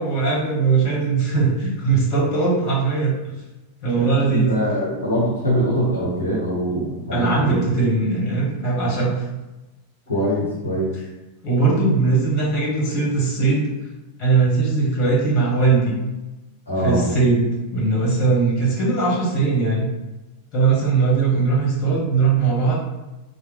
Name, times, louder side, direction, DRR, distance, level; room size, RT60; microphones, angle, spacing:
voice 1, 0.0-3.4 3.8-4.5 7.1-9.3 11.4-13.6 14.2-15.9 16.8-17.4 17.7-19.9 20.5-22.7, right 4 dB, 35° left, -5 dB, 1.4 m, -20 dB
voice 2, 3.9-7.6 10.1-10.9 16.7-17.1, equal, 75° left, -5 dB, 0.8 m, -23 dB
3.3 x 2.1 x 3.2 m, 1.1 s
figure-of-eight pair, 90°, 0 cm